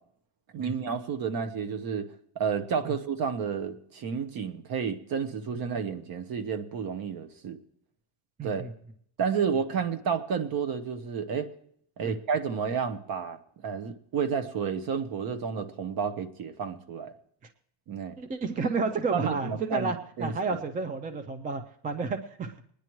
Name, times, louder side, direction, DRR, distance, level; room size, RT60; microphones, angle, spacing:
voice 1, 0.5-2.1 2.3-7.6 8.4-8.6 9.2-11.5 12.0-17.1 17.9-18.2 19.1-19.9 20.2-20.3, right 6 dB, 45° right, 10 dB, 1.0 m, -31 dB
voice 2, 8.4-8.7 12.0-12.1 18.2-22.5, right 4 dB, 20° right, 9 dB, 0.4 m, -31 dB
21.5 x 10.0 x 3.1 m, 0.65 s
cardioid pair, 165°, 49 cm